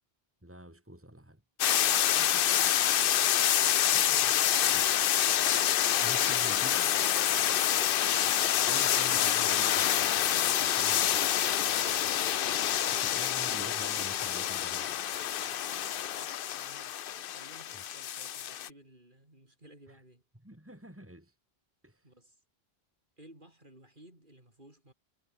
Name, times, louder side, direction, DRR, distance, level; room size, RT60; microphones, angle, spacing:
voice 1, 0.4-1.4 2.0-2.4 2.6-2.7 3.9-4.9 6.0-7.0 8.7-11.3 12.9-15.0 17.7-17.8 19.9-20.0 20.4-21.3 21.8-22.1, right 1 dB, 10° right, 4.1 m, -48 dB
sound 1, 1.6-18.7, left 10 dB, 65° left, 0.8 m, -27 dB
voice 2, 1.8-3.3 7.5-8.2 11.6-13.2 15.5-17.0 17.3-20.2 22.0-22.4 23.2-24.9, right 1 dB, 55° right, 6.9 m, -57 dB
omnidirectional pair, 1.0 m